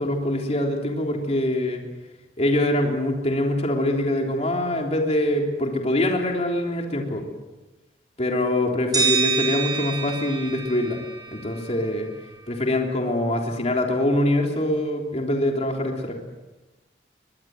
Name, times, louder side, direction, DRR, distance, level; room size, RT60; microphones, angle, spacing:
voice 1, 0.0-1.8 2.4-7.3 8.2-11.0 11.3-12.1 12.5-16.2, left 1 dB, 40° left, 1 dB, 3.6 m, -24 dB
sound 1, 8.9-11.9, right 6 dB, 25° right, 7.3 m, -27 dB
24.5 x 22.0 x 7.9 m, 1.1 s
head